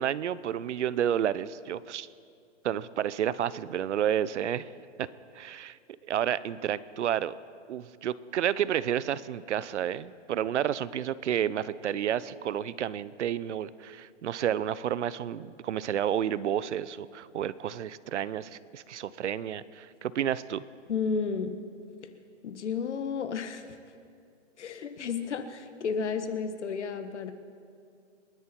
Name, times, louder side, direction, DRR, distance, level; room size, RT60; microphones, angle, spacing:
voice 1, 0.0-2.1 2.6-4.7 5.0-5.1 5.3-5.8 6.1-7.3 7.7-20.6, right 10 dB, 70° right, 18 dB, 0.7 m, -30 dB
voice 2, 20.9-21.5 22.4-23.6 24.6-27.3, left 5 dB, 70° left, 9 dB, 1.6 m, -32 dB
28.5 x 11.0 x 4.5 m, 2.3 s
hypercardioid pair, 160°, 36 cm